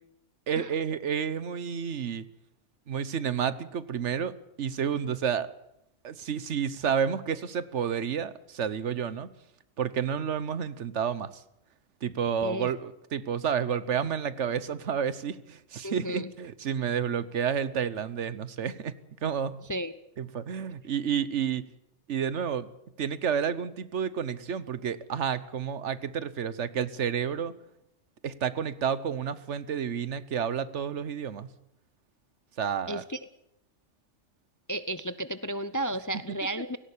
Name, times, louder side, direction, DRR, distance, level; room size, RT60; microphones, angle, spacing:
voice 1, 0.5-2.3 2.9-5.5 6.0-9.3 9.8-11.4 12.0-19.6 20.2-21.6 22.1-22.7 23.0-27.6 28.2-31.5 32.6-33.0, right 7 dB, 70° right, 16 dB, 1.2 m, -30 dB
voice 2, 15.8-16.3 19.7-19.9 32.9-33.2 34.7-36.8, right 1 dB, 20° left, 13 dB, 0.5 m, -33 dB
17.5 x 17.5 x 8.6 m, 0.82 s
omnidirectional pair, 1.3 m